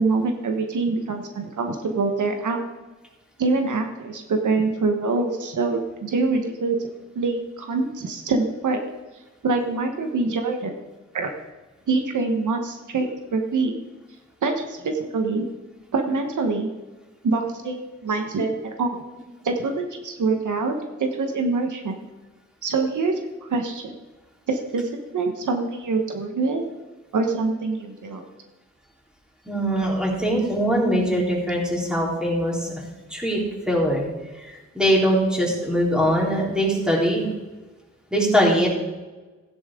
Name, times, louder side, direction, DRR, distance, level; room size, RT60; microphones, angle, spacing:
voice 1, 0.0-2.6 3.4-6.9 7.1-8.8 9.4-10.8 11.1-11.3 11.9-13.7 14.4-15.5 15.9-16.7 17.2-19.0 19.4-22.0 22.6-23.1 23.4-23.9 24.5-26.6 27.1-28.2, right 3 dB, 80° right, 4 dB, 1.3 m, -25 dB
voice 2, 29.5-32.7 33.1-33.4 33.7-34.1 34.3-37.3 38.1-38.7, equal, 5° right, -4 dB, 3.9 m, -22 dB
15.5 x 10.0 x 3.8 m, 1.2 s
cardioid pair, 80°, 30 cm